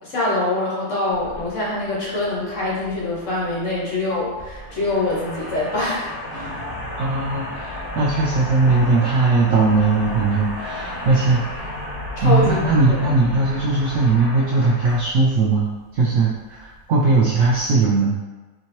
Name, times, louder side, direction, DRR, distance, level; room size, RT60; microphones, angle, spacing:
voice 1, 0.0-6.7 12.2-13.0, left 2 dB, 50° left, -6 dB, 1.2 m, -24 dB
sound 1, 1.1-17.7, left 1 dB, 70° left, 1.5 m, -34 dB
voice 2, 7.0-11.8 12.2-18.2, right 3 dB, 70° right, -5 dB, 0.7 m, -19 dB
4.3 x 2.8 x 3.0 m, 1.2 s
omnidirectional pair, 1.8 m